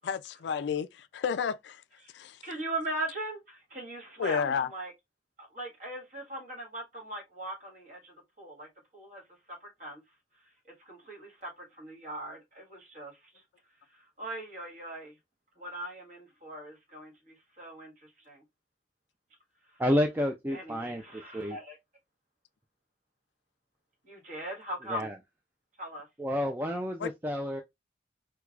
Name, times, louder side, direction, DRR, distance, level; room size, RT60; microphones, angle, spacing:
voice 1, 0.0-1.8 2.1-2.4 4.2-4.7 27.0-27.1, left 6 dB, 75° left, 0.3 m, -31 dB
voice 2, 2.4-4.9 5.4-10.0 10.3-13.4 13.9-15.2 15.6-18.4 19.6-19.8 20.5-21.8 24.0-25.1 25.8-26.1, right 1 dB, 45° right, 1.6 m, -40 dB
voice 3, 19.8-21.6 24.9-25.1 26.2-27.6, equal, 10° right, 0.3 m, -30 dB
4.5 x 2.2 x 2.4 m
head